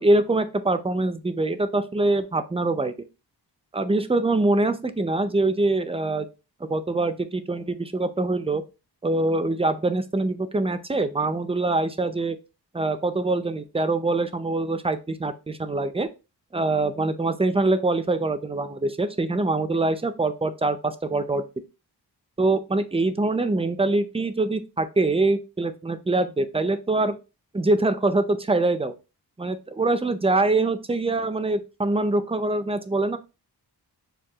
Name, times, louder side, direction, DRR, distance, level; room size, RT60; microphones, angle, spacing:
voice 1, 0.0-2.9 3.7-6.3 6.7-8.6 9.0-12.4 12.7-16.1 16.5-21.4 22.4-27.1 27.5-28.9 29.4-33.2, right 2 dB, 15° right, 9 dB, 0.4 m, -24 dB
6.6 x 2.3 x 2.8 m, 0.29 s
wide cardioid pair, 95°, 41 cm